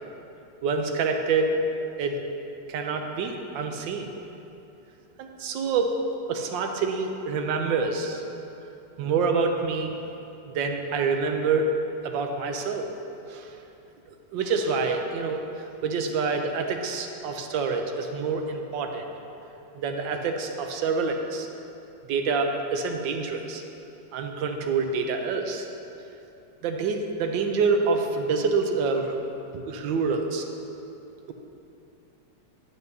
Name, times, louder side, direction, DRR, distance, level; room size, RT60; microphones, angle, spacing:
voice 1, 0.6-1.6 2.0-2.2 2.7-4.1 5.2-6.0 6.3-8.2 9.0-10.0 10.5-11.7 12.0-12.9 13.3-13.6 14.1-15.4 15.8-19.1 19.7-21.5 22.1-23.6 24.1-25.7 26.6-29.1 29.5-30.5, right 4 dB, 85° right, 4 dB, 1.4 m, -27 dB
11.0 x 9.6 x 2.7 m, 2.9 s
omnidirectional pair, 2.0 m